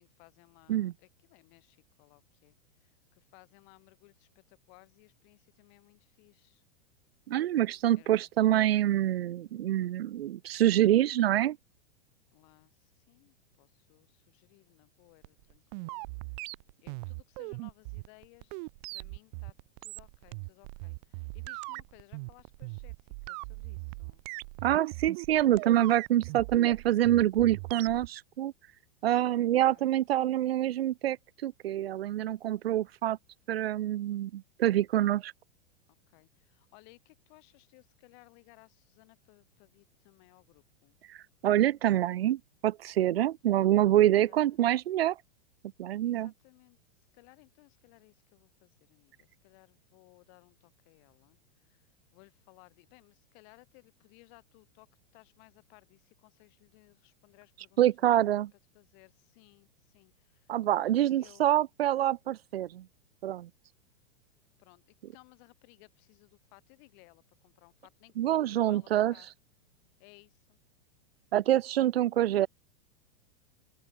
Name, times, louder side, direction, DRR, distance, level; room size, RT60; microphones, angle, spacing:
voice 1, 0.0-6.6 7.9-8.2 12.3-16.5 16.8-19.5 19.8-23.0 23.2-24.2 29.7-30.0 36.1-41.0 44.2-44.6 46.0-54.9 55.1-61.5 64.6-69.3 70.0-70.6, left 35 dB, 50° left, 6.8 m, -61 dB
voice 2, 7.3-11.6 24.6-28.5 29.0-31.2 31.4-33.2 33.5-35.3 41.4-45.2 45.8-46.3 57.8-58.5 60.5-62.8 63.2-63.5 68.2-69.1 71.3-72.5, right 12 dB, 90° right, 0.6 m, -26 dB
sound 1, 15.2-28.1, right 30 dB, 45° right, 0.5 m, -40 dB
open air
hypercardioid pair, 120°, 29 cm